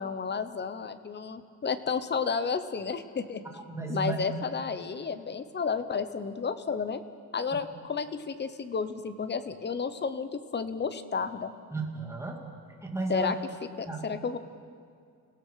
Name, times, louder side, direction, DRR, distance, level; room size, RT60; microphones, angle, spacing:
voice 1, 0.0-3.4 3.9-7.0 7.3-11.5 13.1-13.4 13.8-14.4, left 5 dB, 30° left, 12 dB, 1.0 m, -32 dB
voice 2, 3.5-4.2 11.7-12.4 12.8-13.3 13.9-14.1, right 3 dB, 10° right, 0 dB, 2.7 m, -33 dB
30.0 x 17.0 x 5.8 m, 2.3 s
cardioid pair, 140°, 34 cm